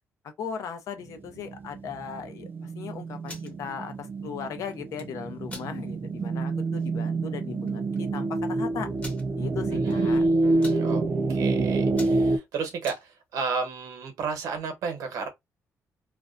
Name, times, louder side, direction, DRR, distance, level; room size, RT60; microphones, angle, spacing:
voice 1, 0.4-8.9 9.4-10.2, left 7 dB, 70° left, 0.6 m, -37 dB
sound 1, 1.0-12.4, right 3 dB, 35° right, 0.4 m, -27 dB
sound 2, 3.1-3.5 4.7-5.1 5.5-5.7 6.2-6.3 6.7-6.9 7.7-7.8 8.0-8.1 9.0-9.2 9.9-10.2 10.4-10.8 11.4-11.6 11.9-13.0, left 2 dB, 25° left, 1.0 m, -43 dB
voice 2, 9.7-11.0 11.3-15.3, right 5 dB, 85° right, 0.9 m, -33 dB
2.4 x 2.2 x 2.5 m
cardioid pair, 125°, 6 cm